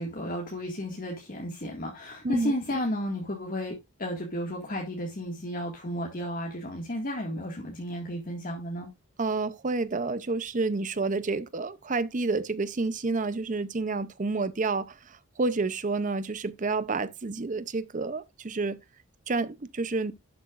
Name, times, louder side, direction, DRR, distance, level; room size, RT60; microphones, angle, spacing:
voice 1, 0.0-8.9, equal, 40° left, 2.0 m, -33 dB
voice 2, 9.2-18.8 19.3-20.1, right 3 dB, 35° right, 0.6 m, -29 dB
11.5 x 8.0 x 2.5 m
head